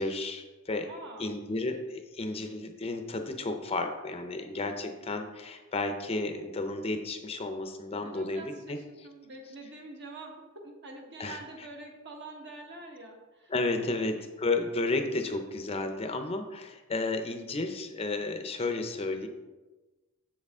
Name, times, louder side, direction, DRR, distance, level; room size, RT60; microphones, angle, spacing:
voice 1, 0.0-0.9 1.2-8.8 11.2-11.7 13.5-19.3, left 2 dB, 30° left, 6 dB, 0.6 m, -32 dB
voice 2, 0.9-1.3 7.9-13.5, right 2 dB, 55° right, 1 dB, 1.3 m, -46 dB
7.7 x 6.6 x 3.6 m, 1.2 s
head